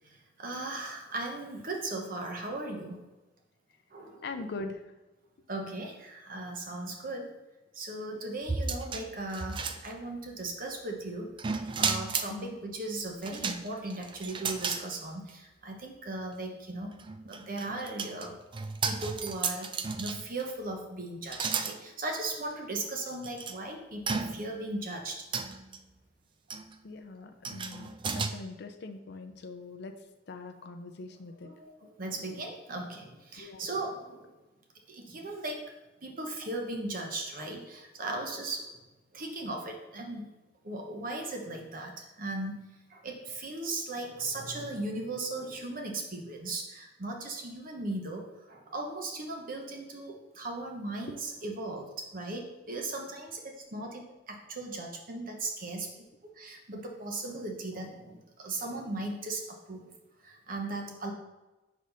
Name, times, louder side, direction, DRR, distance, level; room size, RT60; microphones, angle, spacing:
voice 1, 0.4-3.1 3.9-4.2 5.5-7.3 7.7-17.0 17.2-18.3 18.8-25.2 31.4-34.3 34.9-35.7 36.0-38.7 39.1-40.3 40.6-56.1 56.4-59.9 60.2-61.1, right 2 dB, 50° right, 2 dB, 0.9 m, -37 dB
voice 2, 4.2-4.8 12.3-12.6 26.8-29.9 30.3-31.5 31.8-31.9 33.4-33.7, left 3 dB, 65° left, 6 dB, 0.5 m, -42 dB
sound 1, 8.5-10.3 11.4-12.3 13.2-14.9 15.3-15.4 16.9-20.4 21.3-21.8 22.5-22.6 23.2-23.5 24.1-24.6 25.3-25.8 26.5-26.7 27.4-28.3, right 5 dB, 25° right, 0.4 m, -34 dB
5.0 x 3.9 x 5.5 m, 1.1 s
head